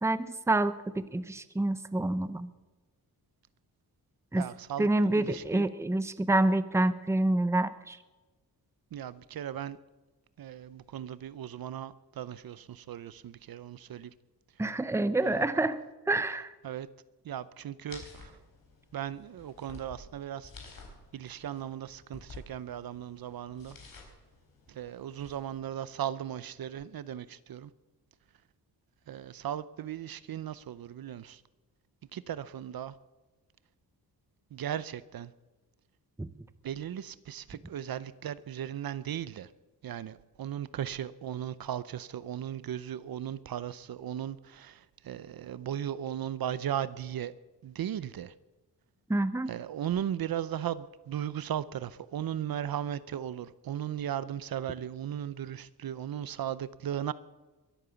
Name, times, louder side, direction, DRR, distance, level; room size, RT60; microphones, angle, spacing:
voice 1, 0.0-2.5 4.3-4.4 4.8-8.0 14.6-15.8 16.1-16.5 36.2-36.3 49.1-49.5, right 2 dB, 5° right, 14 dB, 0.7 m, -27 dB
voice 2, 4.4-5.7 8.9-9.8 10.4-14.1 15.2-15.5 16.6-16.9 17.2-18.3 18.9-20.5 21.1-23.8 24.7-27.7 29.1-31.4 32.1-32.9 34.5-35.3 36.6-39.5 39.8-47.3 47.6-48.3 49.5-57.1, right 10 dB, 60° right, 17 dB, 0.7 m, -37 dB
sound 1, 17.9-25.6, left 3 dB, 60° left, 4.5 m, -52 dB
22.5 x 9.0 x 7.0 m, 1.2 s
wide cardioid pair, 130°, 39 cm